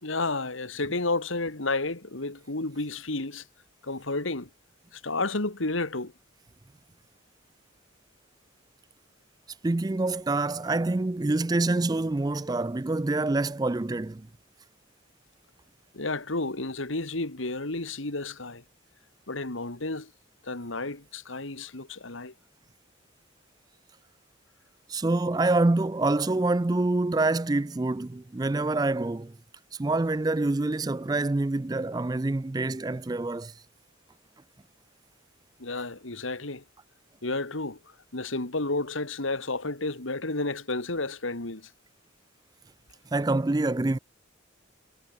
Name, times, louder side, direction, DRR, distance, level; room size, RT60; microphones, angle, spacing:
voice 1, 0.0-3.4 3.8-4.5 4.9-6.1 15.9-18.6 19.3-20.1 20.4-22.3 35.6-36.6 37.2-37.8 38.1-41.7, left 2 dB, 80° left, 2.3 m, -31 dB
voice 2, 9.6-14.3 24.9-29.4 29.8-33.5 43.1-44.0, right 2 dB, 20° right, 0.4 m, -26 dB
head